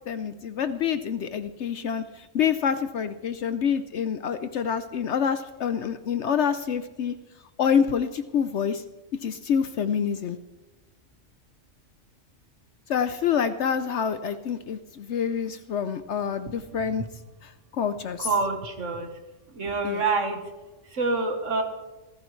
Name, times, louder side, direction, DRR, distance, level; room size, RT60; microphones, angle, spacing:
voice 1, 0.1-7.1 7.6-8.8 9.2-10.4 12.9-17.0 17.4-18.3 19.8-20.0, left 7 dB, 70° left, 10 dB, 0.9 m, -27 dB
voice 2, 18.2-19.1 19.6-20.4 21.0-21.6, right 3 dB, 80° right, 4 dB, 1.8 m, -26 dB
25.5 x 14.5 x 3.2 m, 1.1 s
omnidirectional pair, 1.3 m